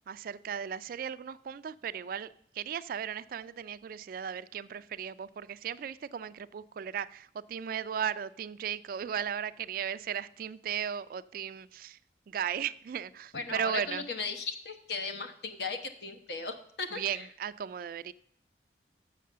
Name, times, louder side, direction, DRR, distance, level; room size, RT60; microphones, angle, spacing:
voice 1, 0.1-12.0 12.3-14.0 17.0-18.1, right 8 dB, 55° right, 0.3 m, -36 dB
voice 2, 13.3-17.3, left 4 dB, 65° left, 1.0 m, -37 dB
6.7 x 6.7 x 6.5 m
head